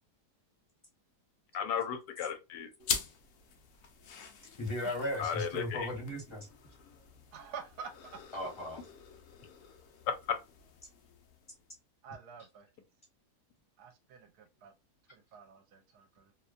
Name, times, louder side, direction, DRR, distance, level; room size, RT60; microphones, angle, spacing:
voice 1, 1.5-2.7 5.2-5.9 10.1-10.4, left 7 dB, 85° left, 1.2 m, -34 dB
sound 1, 2.8-11.8, left 6 dB, 65° left, 0.9 m, -44 dB
voice 2, 4.6-6.5 8.3-8.8, left 1 dB, 25° left, 0.7 m, -36 dB
voice 3, 7.3-8.1 12.0-12.7 13.8-14.7 15.1-16.3, right 6 dB, 75° right, 1.1 m, -48 dB
2.9 x 2.1 x 2.3 m
omnidirectional pair, 1.8 m